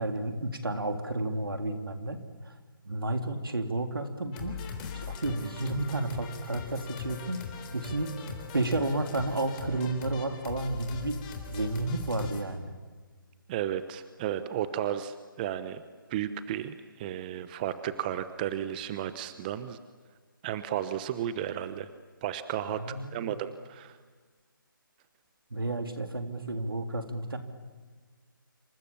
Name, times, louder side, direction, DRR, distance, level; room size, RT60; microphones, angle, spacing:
voice 1, 0.0-2.2 2.8-4.7 5.0-7.4 7.7-11.2 11.5-12.7 22.7-23.3 25.5-27.4, right 2 dB, 85° right, 6 dB, 3.7 m, -31 dB
sound 1, 4.3-12.4, left 7 dB, 20° left, 3.7 m, -41 dB
voice 2, 13.5-15.8 16.1-19.8 20.4-21.9 22.2-22.8 23.1-24.0, right 11 dB, 25° right, 12 dB, 1.1 m, -33 dB
27.5 x 26.5 x 7.3 m, 1.5 s
figure-of-eight pair, 155°, 12 cm